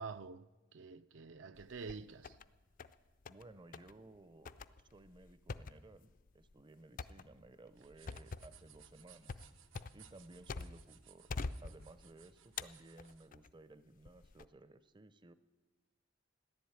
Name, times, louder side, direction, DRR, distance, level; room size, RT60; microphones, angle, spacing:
voice 1, 0.0-2.4, right 4 dB, 70° right, 0.5 m, -47 dB
sound 1, 1.6-2.5 2.8-3.5 3.7-3.9 4.5-10.9 11.3-12.1 12.6-13.5 14.1-14.5, left 4 dB, 45° left, 0.5 m, -46 dB
voice 2, 3.3-4.5 4.9-9.5 9.9-11.3 11.6-15.3, right 2 dB, 25° right, 0.5 m, -58 dB
sound 2, 7.7-13.3, right 9 dB, 90° right, 0.9 m, -63 dB
15.0 x 11.0 x 8.9 m
head